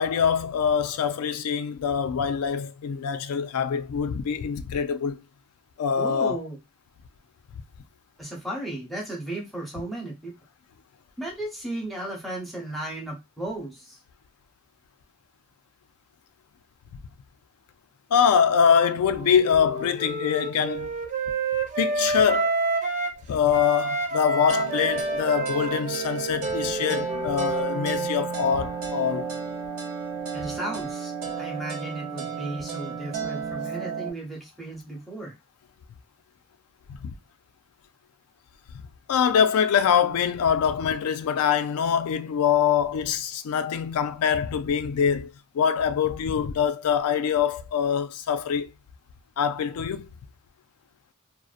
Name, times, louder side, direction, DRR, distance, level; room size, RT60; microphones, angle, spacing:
voice 1, 0.0-5.2 5.8-6.4 18.1-20.9 21.8-22.6 23.3-29.3 37.0-37.1 39.1-48.7 49.4-50.1, left 7 dB, 75° left, 0.3 m, -24 dB
voice 2, 6.0-6.6 8.2-10.3 11.2-14.0 30.3-31.1 31.4-35.3, right 1 dB, ahead, 0.7 m, -35 dB
Wind instrument woodwind instrument, 18.8-23.2 23.5-28.0, right 3 dB, 35° right, 0.5 m, -29 dB
sound 1, 24.5-34.1, right 5 dB, 75° right, 0.6 m, -32 dB
2.6 x 2.0 x 2.4 m
head